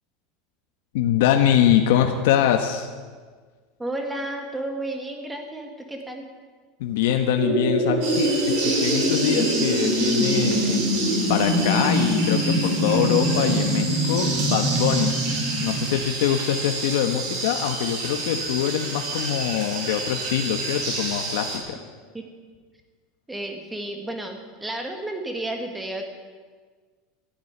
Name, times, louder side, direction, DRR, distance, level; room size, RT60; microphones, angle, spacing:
voice 1, 0.9-2.9 6.8-10.8 11.3-15.1 15.6-21.8, left 10 dB, 75° left, 5 dB, 1.2 m, -23 dB
voice 2, 3.8-6.2 22.1-22.2 23.3-26.1, right 1 dB, 5° right, 4 dB, 1.7 m, -32 dB
sound 1, 7.4-15.9, equal, 80° right, 4.2 m, -24 dB
sound 2, 8.0-21.6, right 3 dB, 50° right, 3.8 m, -30 dB
14.0 x 10.0 x 8.8 m, 1.5 s
supercardioid pair, 165°, 0 cm